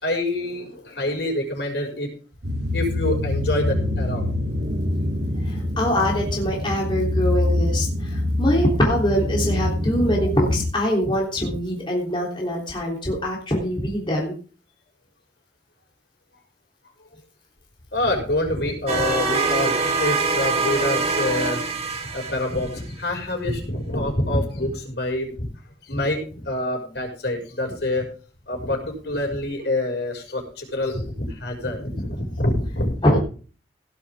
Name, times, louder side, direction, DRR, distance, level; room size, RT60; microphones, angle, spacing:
voice 1, 0.0-2.1 2.7-4.2 17.9-21.6 22.0-25.5 25.9-28.0 28.5-33.2, left 1 dB, 65° left, 2 dB, 6.2 m, -26 dB
sound 1, 2.4-10.7, left 1 dB, 70° right, 3.0 m, -25 dB
voice 2, 5.4-14.3 33.0-33.2, equal, 25° left, -2 dB, 3.5 m, -23 dB
sound 2, 18.9-22.8, right 4 dB, 35° right, 2.3 m, -24 dB
17.5 x 11.0 x 3.7 m, 0.39 s
head